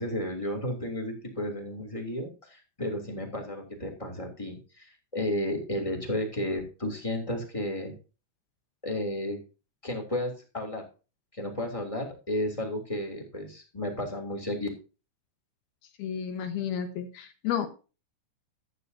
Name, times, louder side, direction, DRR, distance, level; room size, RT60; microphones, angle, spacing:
voice 1, 0.0-8.0 8.8-9.4 9.8-10.8 11.3-14.7, left 1 dB, 10° left, 2 dB, 1.7 m, -33 dB
voice 2, 16.0-17.7, left 9 dB, 70° left, 8 dB, 2.5 m, -31 dB
14.0 x 9.7 x 2.8 m, 0.32 s
omnidirectional pair, 5.9 m